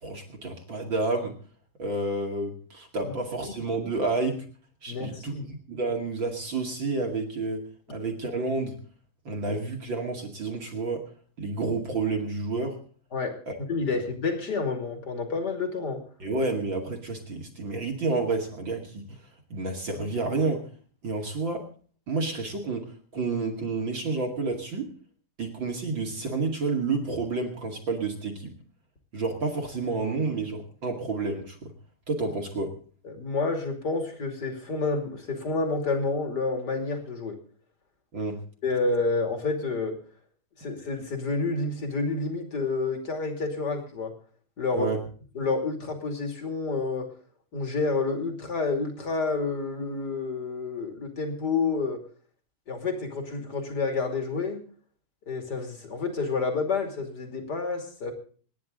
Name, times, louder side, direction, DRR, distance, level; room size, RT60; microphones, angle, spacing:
voice 1, 0.0-1.4 1.8-4.4 4.8-5.3 5.7-8.8 9.2-11.0 11.4-12.8 13.5-13.6 16.2-19.1 19.5-20.7 21.0-21.7 22.1-24.9 25.4-28.5 29.1-31.7 32.1-32.7 38.1-38.4 44.7-45.0, right 3 dB, 40° right, 2 dB, 2.0 m, -30 dB
voice 2, 4.9-5.5 13.1-13.4 13.7-16.0 33.0-37.3 38.6-40.0 40.6-44.1 44.6-44.9 45.3-47.1 47.5-52.0 52.7-54.6 55.3-58.1, left 3 dB, 30° left, 4 dB, 2.4 m, -29 dB
27.0 x 10.5 x 3.8 m, 0.43 s
omnidirectional pair, 5.0 m